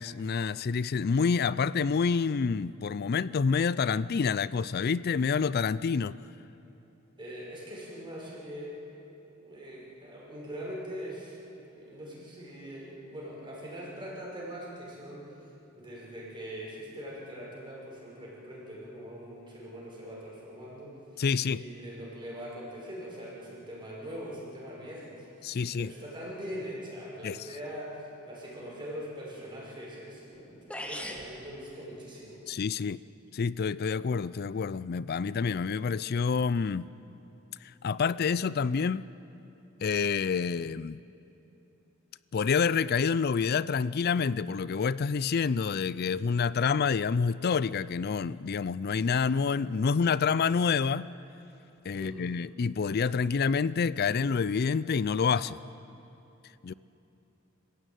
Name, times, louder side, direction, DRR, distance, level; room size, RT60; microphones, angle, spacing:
voice 1, 0.0-6.2 21.2-21.6 25.4-25.9 27.2-27.4 32.5-33.0 33.3-36.9 37.8-39.0 39.8-41.0 42.3-51.1 51.8-55.6 56.6-56.7, left 5 dB, 50° left, 18 dB, 0.4 m, -28 dB
voice 2, 7.2-8.8 9.3-15.4 15.7-32.5 51.9-52.3, equal, 25° right, -4 dB, 6.0 m, -42 dB
sound 1, 30.3-30.4 30.7-31.3, equal, 5° left, 2.0 m, -37 dB
26.0 x 15.5 x 9.2 m, 3.0 s
head